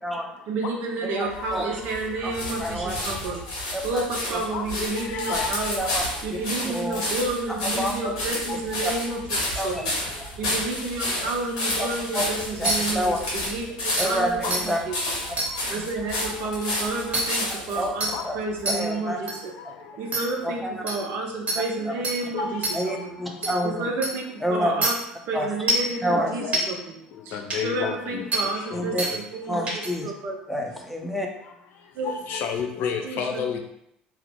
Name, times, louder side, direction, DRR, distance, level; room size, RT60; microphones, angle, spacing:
voice 1, 0.5-5.9 6.2-14.9 15.7-19.5 20.0-23.2 23.6-24.9 25.3-27.0 27.2-29.7 30.0-30.4 31.9-32.1 33.0-33.5, right 3 dB, 60° right, 1 dB, 0.6 m, -31 dB
voice 2, 1.0-1.6 2.2-2.3 2.6-3.0 3.7-4.1 4.3-4.4 5.3-5.4 5.8-6.0 6.7-7.0 7.6-8.1 8.8-8.9 9.6-9.8 11.8-12.3 12.6-13.2 14.0-14.8 17.6-17.9 18.2-18.4 18.7-19.2 20.6-20.8 21.9-22.0 22.7-23.8 24.4-24.7 25.3-25.5 26.0-26.3 28.7-29.0 29.5-30.1 30.5-31.3, equal, ahead, 1 dB, 0.6 m, -28 dB
sound 1, 1.3-17.9 18.6-18.7, left 1 dB, 85° left, 1.0 m, -30 dB
voice 3, 4.5-5.5 8.5-8.6 14.4-14.6 18.1-18.2 22.3-22.6 26.1-26.6 27.3-28.2 32.0-33.6, left 6 dB, 60° left, 4 dB, 0.4 m, -30 dB
sound 2, 12.7-12.8 13.5-13.6 14.0-14.1 14.5-14.6 15.4-15.5 17.1-17.2 18.0-18.1 18.7-18.8 19.3-19.4 20.1-20.2 20.9-21.0 21.5-21.6 22.0-22.2 22.6-22.7 23.4-23.5 24.0-24.1 24.8-24.9 25.7-25.9 26.5-26.6 27.5-27.6 28.3-28.4 29.0-29.1 29.7-29.9, right 2 dB, 30° right, 0.8 m, -24 dB
2.5 x 2.0 x 2.9 m, 0.76 s
hypercardioid pair, 70°, 4 cm